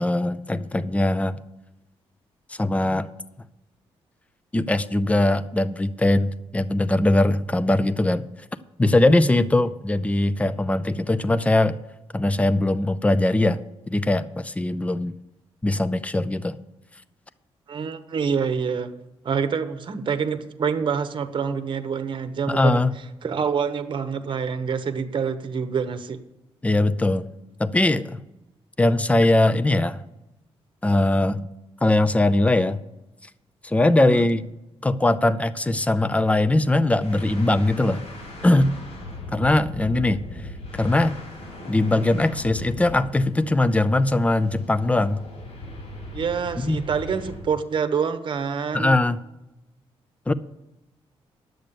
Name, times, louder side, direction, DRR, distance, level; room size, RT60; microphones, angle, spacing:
voice 1, 0.0-1.4 2.5-3.1 4.5-8.2 8.8-11.8 12.1-13.6 13.9-15.1 15.6-16.6 22.5-22.9 26.6-27.3 27.6-28.2 28.8-30.0 30.8-31.5 31.8-32.8 33.6-34.4 34.8-38.1 38.4-38.7 39.3-40.2 40.7-41.2 41.7-45.2 46.6-46.8 48.7-49.2 50.3-50.4, left 2 dB, 10° left, 15 dB, 0.6 m, -21 dB
voice 2, 17.7-18.9 19.2-22.8 23.2-26.2 34.0-34.3 46.1-49.0, right 6 dB, 50° right, 10 dB, 1.0 m, -26 dB
sound 1, 37.0-47.5, left 2 dB, 80° left, 4.6 m, -39 dB
10.5 x 7.9 x 6.9 m, 0.95 s
cardioid pair, 100°, 11 cm